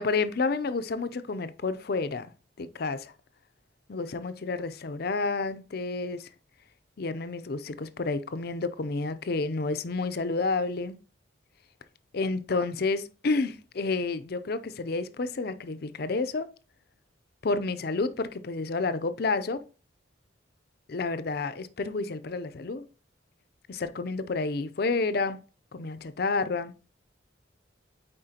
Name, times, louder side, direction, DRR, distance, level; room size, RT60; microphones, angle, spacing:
voice 1, 0.0-2.3 2.6-3.1 3.9-6.3 7.0-11.0 12.1-16.5 17.4-19.6 20.9-22.8 23.7-25.4 25.7-26.7, left 3 dB, 50° left, 0.5 m, -30 dB
8.7 x 4.2 x 2.8 m
head